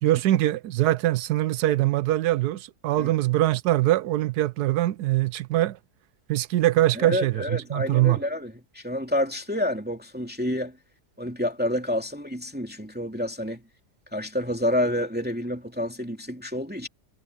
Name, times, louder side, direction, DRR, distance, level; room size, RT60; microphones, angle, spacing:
voice 1, 0.0-5.8 6.3-8.2, right 15 dB, 80° right, 1.1 m, -23 dB
voice 2, 6.9-10.8 11.2-13.6 14.1-16.9, left 1 dB, 5° right, 2.8 m, -28 dB
omnidirectional pair, 1.8 m